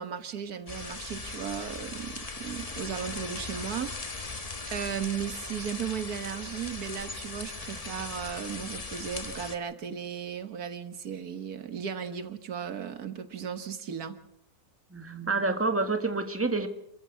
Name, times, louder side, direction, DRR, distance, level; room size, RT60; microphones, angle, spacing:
voice 1, 0.0-14.2, right 8 dB, 90° right, 10 dB, 1.9 m, -36 dB
sound 1, 0.7-9.6, left 3 dB, 25° left, 1.3 m, -39 dB
voice 2, 14.9-16.7, right 3 dB, 10° right, 7 dB, 1.7 m, -28 dB
27.0 x 14.5 x 7.3 m, 0.75 s
omnidirectional pair, 1.6 m